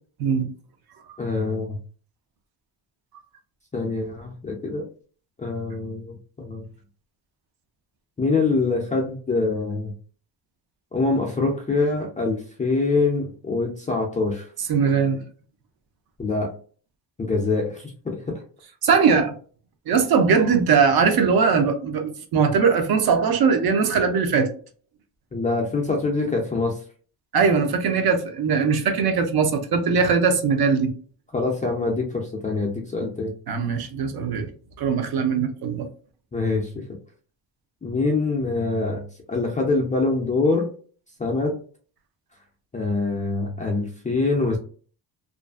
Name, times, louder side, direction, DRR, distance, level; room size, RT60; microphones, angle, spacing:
voice 1, 1.2-1.8 3.7-4.8 5.4-6.6 8.2-9.9 10.9-14.5 16.2-16.5 17.2-18.2 25.3-26.8 31.3-33.3 36.3-36.8 37.8-39.0 39.3-40.7 41.2-41.5 42.7-44.6, left 3 dB, 20° left, -1 dB, 0.3 m, -24 dB
voice 2, 14.7-15.2 18.8-19.3 19.9-24.5 27.3-30.9 33.5-34.5 34.8-35.9, right 5 dB, 55° right, 7 dB, 0.6 m, -20 dB
2.5 x 2.3 x 2.3 m, 0.42 s
cardioid pair, 145°, 45 cm